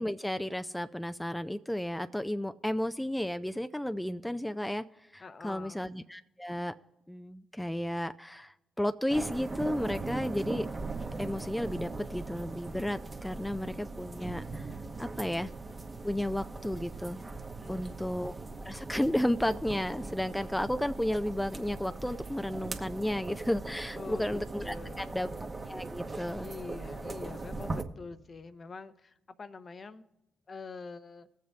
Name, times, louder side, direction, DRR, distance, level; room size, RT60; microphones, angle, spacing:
voice 1, 0.0-4.8 5.1-6.7 7.1-10.7 11.2-14.7 15.0-15.5 16.0-17.2 17.7-18.3 18.6-25.3 25.7-26.5, left 1 dB, 5° left, 9 dB, 0.4 m, -33 dB
voice 2, 5.2-5.8 17.6-18.3 23.9-25.3 26.4-30.1 30.5-31.3, left 4 dB, 45° left, 11 dB, 0.7 m, -45 dB
sound 1, 9.1-27.8, right 3 dB, 35° right, 1.1 m, -40 dB
20.0 x 7.4 x 3.5 m, 0.94 s
supercardioid pair, 50°, 0 cm